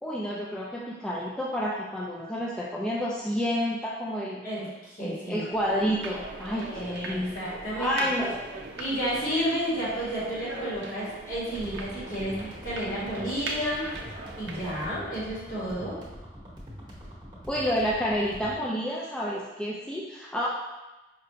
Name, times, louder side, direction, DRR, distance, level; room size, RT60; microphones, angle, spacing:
voice 1, 0.0-4.4 5.0-7.3 7.8-8.4 17.5-20.5, equal, 5° left, -5 dB, 0.3 m, -29 dB
voice 2, 4.4-5.4 6.6-7.9 8.8-13.9 14.4-16.0, equal, 50° left, -8 dB, 1.5 m, -31 dB
sound 1, 5.5-14.9, right 2 dB, 80° right, 0.5 m, -40 dB
sound 2, 11.5-18.5, equal, 25° right, 0.9 m, -44 dB
5.0 x 2.5 x 2.8 m, 1.1 s
head